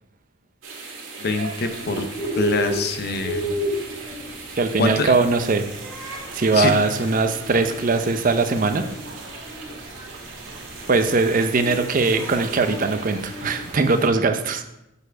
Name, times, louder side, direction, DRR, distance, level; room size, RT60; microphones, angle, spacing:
sound 1, 0.6-14.1, right 3 dB, 85° right, 1.7 m, -38 dB
voice 1, 1.2-2.1 2.4-3.5 4.8-5.1 6.5-6.7, left 3 dB, 55° left, 7 dB, 0.7 m, -24 dB
Bird, 1.7-13.8, left 1 dB, ahead, 1.3 m, -33 dB
voice 2, 4.6-5.6 6.0-8.8 10.9-14.6, right 3 dB, 40° right, 8 dB, 0.6 m, -21 dB
6.8 x 4.7 x 4.5 m, 0.85 s
head